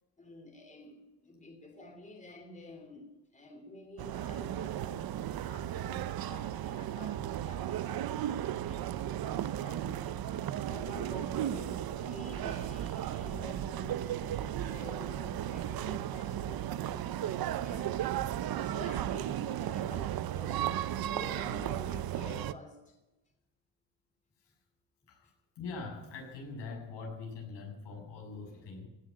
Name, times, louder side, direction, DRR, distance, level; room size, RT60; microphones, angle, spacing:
voice 1, 0.2-18.0 18.6-20.6 20.9-23.0, left 1 dB, 20° left, 3 dB, 3.0 m, -49 dB
sound 1, 4.0-22.5, right 11 dB, 60° right, 0.7 m, -35 dB
voice 2, 25.1-28.9, left 4 dB, 85° left, 0 dB, 6.7 m, -43 dB
17.0 x 7.5 x 9.8 m, 1.0 s
cardioid pair, 115°, 41 cm